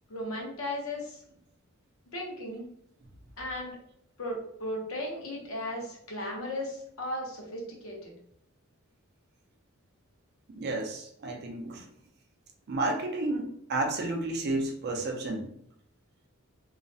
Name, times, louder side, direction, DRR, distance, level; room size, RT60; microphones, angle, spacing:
voice 1, 0.1-1.2 2.1-2.7 3.4-3.8 4.2-8.1, left 1 dB, 70° left, -1 dB, 0.7 m, -36 dB
voice 2, 10.5-11.9 12.7-15.5, right 2 dB, 50° right, 2 dB, 0.4 m, -31 dB
2.4 x 2.0 x 2.6 m, 0.71 s
head